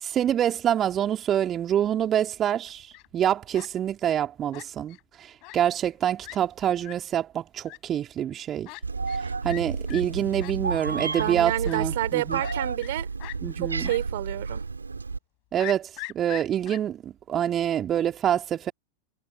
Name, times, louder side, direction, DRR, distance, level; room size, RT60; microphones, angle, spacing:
voice 1, 0.0-8.7 9.4-12.4 13.4-13.9 15.5-18.7, right 10 dB, 25° right, 2.7 m, -26 dB
Fowl, 2.7-3.1 3.5-3.7 4.5-5.0 5.4-5.6 5.9-6.0 6.2-6.4 6.8-6.9 7.6-7.8 8.6-8.8 9.1-9.2 9.5-9.6 9.9-10.0 10.4-10.5 11.1-11.2 11.6-11.8 12.4-12.9 13.2-13.4 13.8-14.0 14.3-14.4 15.6-16.8, left 28 dB, 45° left, 6.3 m, -40 dB
Meow, 8.8-15.2, right 4 dB, 75° right, 7.3 m, -31 dB
voice 2, 10.9-13.1 13.6-14.6, right 15 dB, 55° right, 4.5 m, -29 dB
figure-of-eight pair, 90°, 0 cm